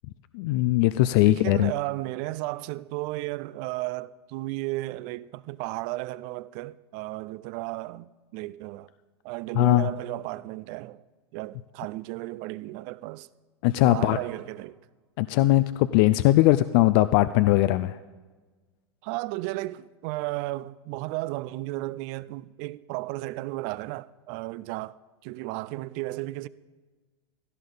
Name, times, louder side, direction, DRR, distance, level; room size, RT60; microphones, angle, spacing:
voice 1, 0.3-1.7 9.6-9.9 13.6-14.2 15.2-18.0, left 16 dB, 55° left, 0.4 m, -20 dB
voice 2, 1.2-8.9 9.2-11.0 11.3-13.3 13.8-14.8 17.3-17.4 19.0-26.5, right 19 dB, 50° right, 0.5 m, -34 dB
16.5 x 13.5 x 4.0 m
hypercardioid pair, 105°, 14 cm